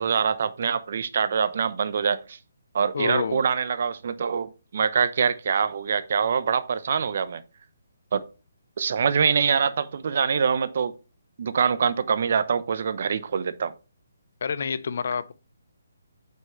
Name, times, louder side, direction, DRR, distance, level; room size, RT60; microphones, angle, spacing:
voice 1, 0.0-2.4 2.7-7.4 8.1-8.2 8.8-10.9 11.4-13.7, right 6 dB, 55° right, 0.8 m, -24 dB
voice 2, 2.9-3.4 14.4-15.3, left 6 dB, 60° left, 0.6 m, -28 dB
7.4 x 5.7 x 3.2 m
figure-of-eight pair, 145°, 0 cm